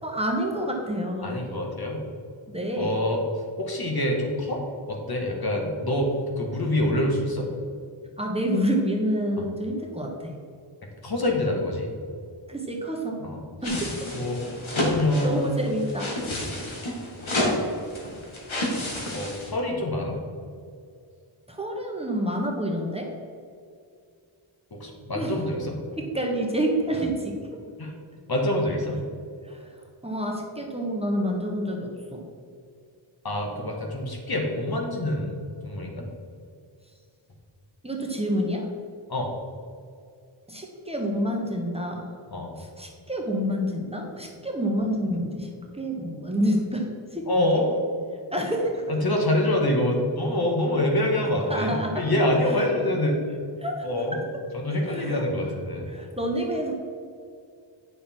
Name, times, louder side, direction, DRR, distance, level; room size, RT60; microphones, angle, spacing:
voice 1, 0.0-1.4 2.5-3.0 8.2-10.3 12.5-13.2 13.6-14.1 15.2-16.1 16.4-16.5 21.5-23.1 25.1-25.3 26.0-27.4 29.5-29.7 30.0-32.3 37.8-38.7 40.5-42.1 42.6-47.6 48.3-48.9 51.3-52.0 52.5-52.7 53.6-53.8 54.9-55.2 55.9-56.7, equal, 10° right, 0 dB, 1.2 m, -28 dB
voice 2, 1.2-2.0 2.8-3.2 3.6-7.5 11.0-11.9 13.2-13.4 14.1-14.4 14.8-15.5 16.3-16.7 17.3-17.5 19.1-20.2 24.7-25.8 27.8-27.9 28.3-29.0 33.2-36.1 39.1-39.3 42.3-42.6 47.3-47.7 48.9-53.2 53.8-54.2 54.5-55.9, left 1 dB, 50° left, 0 dB, 1.7 m, -26 dB
sound 1, 13.6-19.5, left 1 dB, 80° left, 2.0 m, -30 dB
9.2 x 6.5 x 4.5 m, 2.3 s
wide cardioid pair, 120°, 47 cm